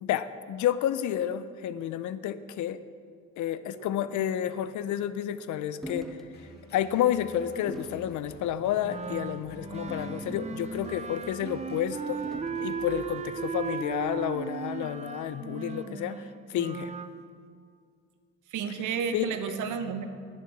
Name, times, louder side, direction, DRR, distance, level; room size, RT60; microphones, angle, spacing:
voice 1, 0.0-2.8 3.4-6.1 6.7-12.2 12.6-16.9 19.1-19.6, left 10 dB, 75° left, 14 dB, 0.5 m, -30 dB
sound 1, 5.8-6.3 6.7-6.9 7.7-8.0 8.8-9.1 9.9-10.8 12.2-12.7, left 1 dB, ahead, 0.9 m, -42 dB
sound 2, 6.3-14.7, equal, 35° left, 2.1 m, -51 dB
Wind instrument woodwind instrument, 8.8-17.1, right 5 dB, 25° right, 0.4 m, -36 dB
voice 2, 18.5-20.0, right 6 dB, 80° right, 8 dB, 0.9 m, -32 dB
10.0 x 7.7 x 4.6 m, 2.2 s
cardioid pair, 90°, 30 cm